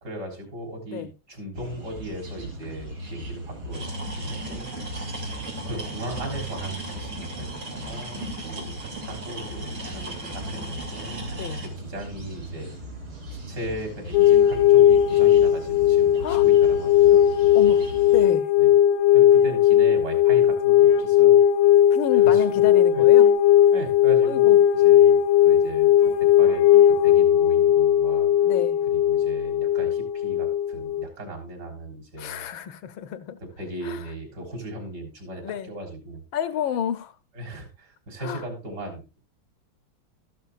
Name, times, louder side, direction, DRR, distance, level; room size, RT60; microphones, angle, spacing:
voice 1, 0.0-4.7 5.7-11.2 11.8-12.7 13.3-17.2 18.6-18.7 19.1-21.6 22.1-22.4 22.9-23.1 23.7-26.1 26.4-28.3 28.9-32.4 33.6-36.2 37.3-39.2, right 1 dB, 50° right, 4.1 m, -37 dB
sound 1, 1.5-18.3, equal, 65° right, 4.4 m, -38 dB
sound 2, 3.7-11.7, right 2 dB, 80° right, 3.9 m, -37 dB
voice 2, 11.3-11.6 16.2-16.4 17.5-18.5 21.9-23.3 24.2-24.6 28.4-28.8 32.2-33.4 33.8-34.0 35.4-35.7 36.3-37.1 38.2-38.4, left 9 dB, 70° left, 1.5 m, -30 dB
sound 3, 14.1-31.0, left 11 dB, 85° left, 1.8 m, -17 dB
13.5 x 12.0 x 2.5 m
omnidirectional pair, 2.4 m